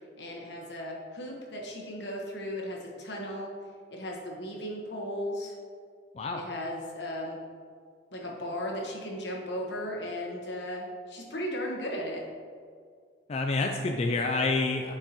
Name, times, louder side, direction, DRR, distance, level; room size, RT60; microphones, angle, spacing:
voice 1, 0.2-3.5 3.9-5.5 6.3-7.4 8.1-12.2, equal, 70° left, -1 dB, 1.3 m, -36 dB
voice 2, 13.3-14.9, left 3 dB, 35° left, 3 dB, 0.4 m, -28 dB
8.8 x 4.8 x 3.0 m, 2.1 s
head